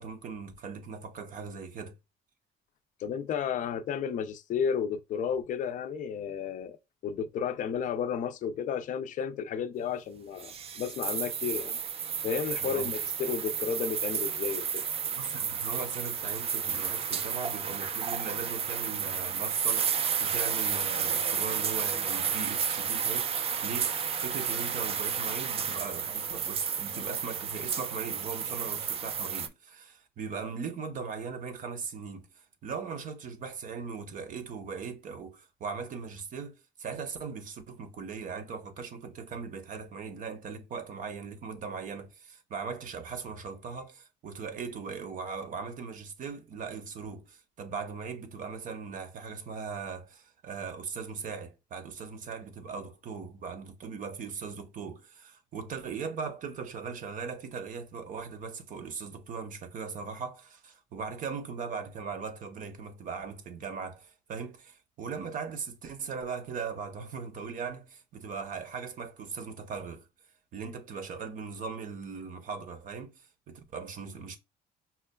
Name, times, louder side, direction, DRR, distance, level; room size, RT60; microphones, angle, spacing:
voice 1, 0.0-2.0 12.6-12.9 15.2-70.1 70.5-74.4, right 5 dB, 50° right, 0.8 m, -39 dB
voice 2, 3.0-6.8 7.0-11.8 12.2-14.8, left 7 dB, 50° left, 0.4 m, -32 dB
sound 1, 10.4-29.5, right 7 dB, 35° right, 0.4 m, -32 dB
5.6 x 2.2 x 2.2 m
cardioid pair, 110°, 17 cm